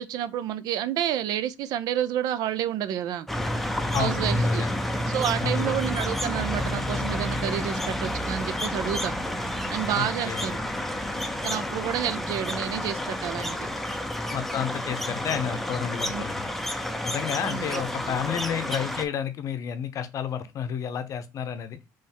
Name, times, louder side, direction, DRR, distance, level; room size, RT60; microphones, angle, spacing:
voice 1, 0.0-3.3 4.0-4.7 5.1-9.1 9.7-10.6 11.4-13.6 16.1-16.3 17.4-18.2, right 10 dB, 65° right, 0.5 m, -29 dB
sound 1, 3.3-19.0, left 1 dB, 5° left, 0.6 m, -30 dB
voice 2, 3.9-4.7 5.4-5.8 10.0-10.5 14.3-16.5 17.0-21.8, left 8 dB, 50° left, 0.7 m, -31 dB
3.5 x 3.1 x 4.3 m
cardioid pair, 115°, 7 cm